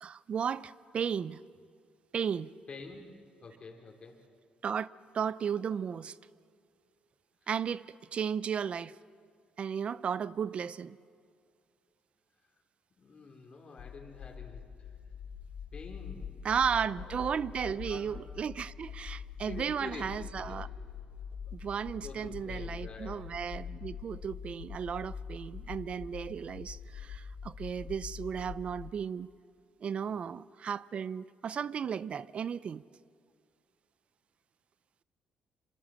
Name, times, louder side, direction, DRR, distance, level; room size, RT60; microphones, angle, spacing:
voice 1, 0.0-1.4 2.1-2.5 4.6-4.9 5.1-6.2 7.5-8.9 9.6-11.0 16.4-20.7 21.5-29.3 29.8-32.8, right 7 dB, 50° right, 0.6 m, -34 dB
voice 2, 2.7-3.0 3.4-4.2 7.4-7.5 12.5-12.6 13.0-15.0 15.7-18.1 19.4-20.6 21.4-21.6 21.9-23.2, left 4 dB, 45° left, 3.5 m, -48 dB
sound 1, 13.8-28.9, left 7 dB, 70° left, 1.0 m, -44 dB
26.5 x 25.5 x 7.6 m
cardioid pair, 85°, 2 cm